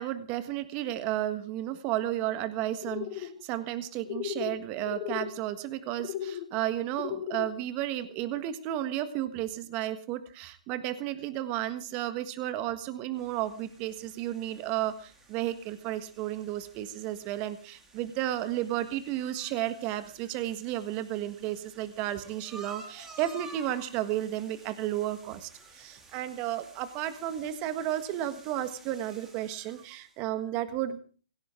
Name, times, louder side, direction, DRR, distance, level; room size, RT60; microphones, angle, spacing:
voice 1, 0.0-31.0, right 13 dB, 30° right, 11 dB, 1.6 m, -33 dB
sound 1, 2.8-3.3 4.1-4.6 4.8-5.3 6.0-6.4 7.0-7.5, left 11 dB, 45° left, 4.7 m, -35 dB
sound 2, 13.1-30.1, right 3 dB, 15° right, 2.9 m, -53 dB
18.0 x 17.0 x 3.8 m, 0.39 s
hypercardioid pair, 135°, 4 cm